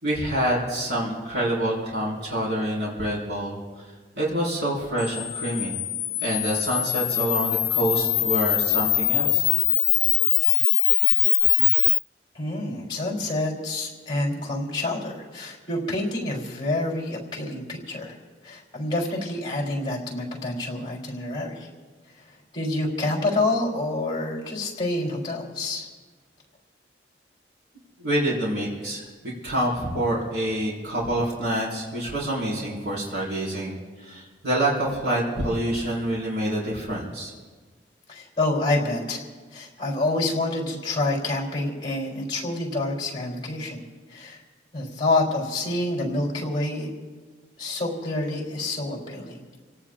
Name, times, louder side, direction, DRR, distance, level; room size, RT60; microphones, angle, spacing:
voice 1, 0.0-3.6 4.1-5.8 6.2-9.5 28.0-29.0 29.4-37.3, right 1 dB, 65° right, -5 dB, 5.0 m, -27 dB
Camera, 5.0-12.0, left 16 dB, 60° left, 0.5 m, -22 dB
voice 2, 12.3-18.2 18.4-21.7 22.5-25.9 38.1-39.2 39.5-43.8 44.1-44.4 44.7-46.9 47.6-49.4, left 2 dB, 25° left, -1 dB, 3.6 m, -27 dB
28.0 x 18.0 x 2.5 m, 1.4 s
head